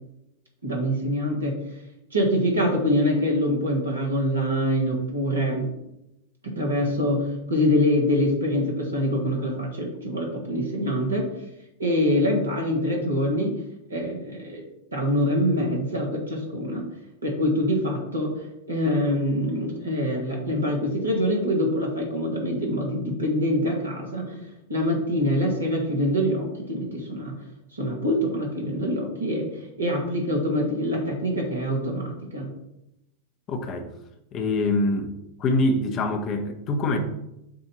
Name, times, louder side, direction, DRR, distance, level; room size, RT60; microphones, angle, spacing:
voice 1, 0.6-1.8 2.1-5.7 6.4-11.3 11.8-13.6 13.9-14.6 14.9-16.9 17.2-27.3 27.7-32.5, equal, 75° right, 0 dB, 1.9 m, -25 dB
voice 2, 33.5-33.9 34.3-35.1 35.4-37.0, left 2 dB, 30° left, 5 dB, 0.9 m, -24 dB
7.5 x 2.8 x 5.9 m, 0.85 s
figure-of-eight pair, 90°, 0 cm